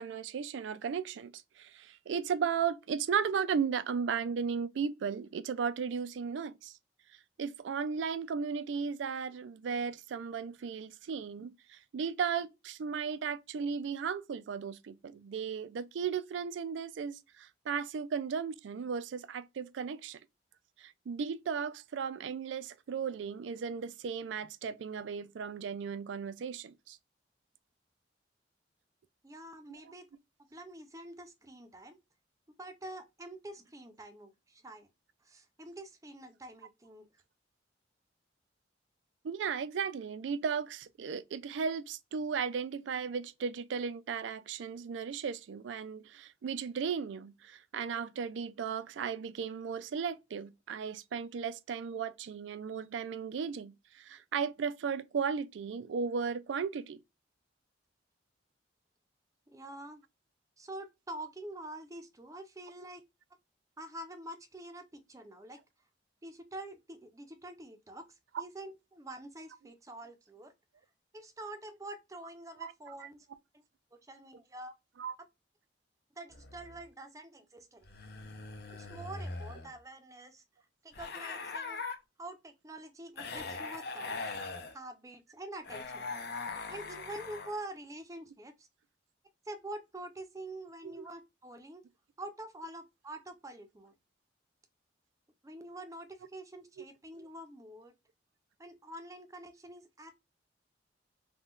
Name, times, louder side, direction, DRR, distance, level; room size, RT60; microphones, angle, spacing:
voice 1, 0.0-6.7 7.4-20.2 20.8-27.0 39.2-57.0 72.6-72.7 75.0-75.1 91.0-91.1, right 6 dB, 80° right, 0.3 m, -35 dB
voice 2, 29.2-30.1 30.5-32.0 32.6-34.9 35.2-37.1 59.5-60.0 60.6-63.0 63.8-65.6 66.2-70.5 71.1-73.3 73.5-73.6 74.0-74.7 76.1-77.9 78.7-80.4 80.8-81.8 82.2-84.2 84.7-86.1 86.7-88.7 89.4-91.8 92.2-93.9 95.4-97.9 98.6-100.2, right 1 dB, 15° right, 0.5 m, -46 dB
sound 1, 76.3-76.9 77.8-79.8 80.9-82.0 83.2-84.7 85.6-87.7, left 4 dB, 55° left, 0.6 m, -41 dB
3.6 x 2.2 x 2.4 m
head